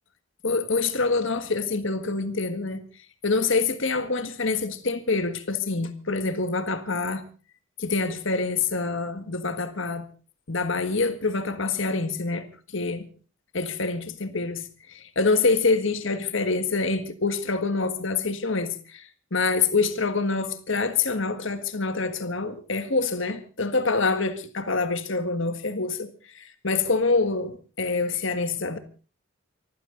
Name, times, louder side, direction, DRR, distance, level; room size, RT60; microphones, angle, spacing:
voice 1, 0.4-2.8 3.2-7.2 7.8-10.1 10.5-13.1 13.5-14.6 14.9-28.8, left 3 dB, 60° left, 1.7 m, -26 dB
24.0 x 15.5 x 3.9 m
head